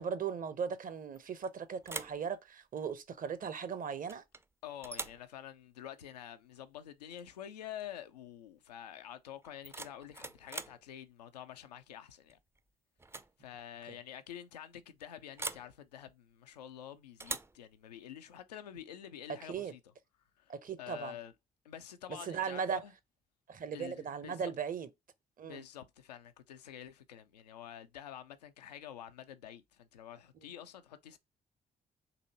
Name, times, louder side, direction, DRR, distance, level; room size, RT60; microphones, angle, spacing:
voice 1, 0.0-4.2 19.5-19.7 20.5-21.2 22.3-22.8 23.5-24.9 25.4-25.6 30.4-30.5, right 6 dB, 45° right, 0.8 m, -38 dB
sound 1, 1.1-1.5 1.8-2.2 4.1-4.4 4.8-5.3 7.1-7.3 7.6-8.0 9.4-10.8 12.3-12.6 13.0-13.3 13.6-13.7 15.4-15.7 17.2-17.6, right 3 dB, 10° right, 0.4 m, -43 dB
voice 2, 4.6-12.4 13.4-19.8 20.4-20.5 20.8-21.3 21.6-22.9 23.7-24.5 25.4-31.2, left 10 dB, 90° left, 0.4 m, -48 dB
4.0 x 2.6 x 2.8 m
hypercardioid pair, 45°, 20 cm